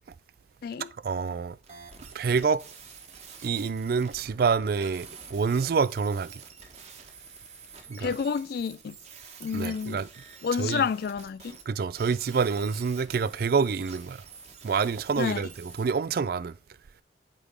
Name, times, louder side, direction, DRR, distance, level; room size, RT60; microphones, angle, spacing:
voice 1, 1.0-1.6 2.1-2.6 3.4-6.4 7.9-8.1 9.5-10.1 10.6-10.8 11.7-14.2 14.6-16.5, right 5 dB, 55° right, 0.4 m, -27 dB
sound 1, 1.6-11.6 11.9-15.9, right 5 dB, 35° right, 1.3 m, -48 dB
voice 2, 8.0-9.0 9.4-10.0 10.4-11.6 15.2-15.5, left 6 dB, 55° left, 0.3 m, -29 dB
8.2 x 3.7 x 5.0 m
head